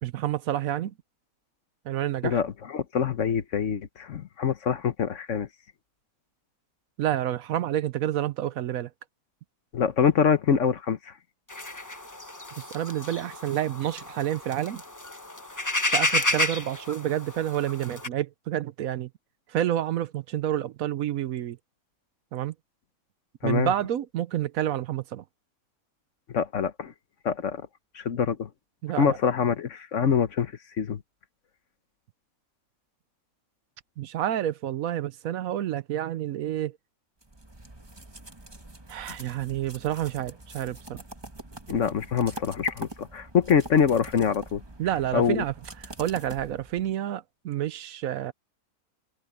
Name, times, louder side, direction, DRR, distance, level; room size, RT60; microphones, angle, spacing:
voice 1, 0.0-0.9 1.8-2.4 7.0-8.9 12.6-14.8 15.9-19.1 19.5-21.6 22.3-22.5 23.4-25.2 28.8-29.2 34.0-36.8 38.9-41.0 44.8-45.5 45.8-48.3, right 11 dB, 75° right, 1.1 m, -29 dB
voice 2, 2.2-5.5 9.7-11.1 23.4-23.7 26.3-26.9 27.2-27.6 27.9-28.5 29.0-30.5 30.8-31.0 41.7-44.6 45.1-45.4, left 7 dB, 60° left, 1.3 m, -25 dB
sound 1, 11.5-18.1, left 2 dB, 15° left, 1.0 m, -31 dB
sound 2, 37.2-47.0, right 2 dB, 15° right, 1.6 m, -44 dB
omnidirectional pair, 1.5 m